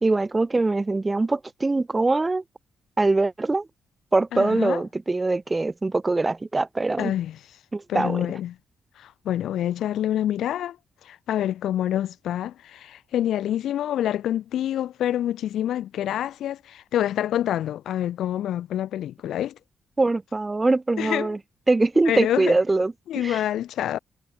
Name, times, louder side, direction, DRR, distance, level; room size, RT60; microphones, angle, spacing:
voice 1, 0.0-2.4 3.0-3.7 4.1-7.1 7.7-8.2 20.0-21.4 21.7-23.4, right 3 dB, 25° right, 0.9 m, -23 dB
voice 2, 4.3-4.8 7.0-7.4 7.9-8.5 9.0-10.8 11.0-19.6 21.0-21.4 22.1-22.6 23.1-24.0, left 11 dB, 75° left, 0.6 m, -27 dB
hypercardioid pair, 45°, 0 cm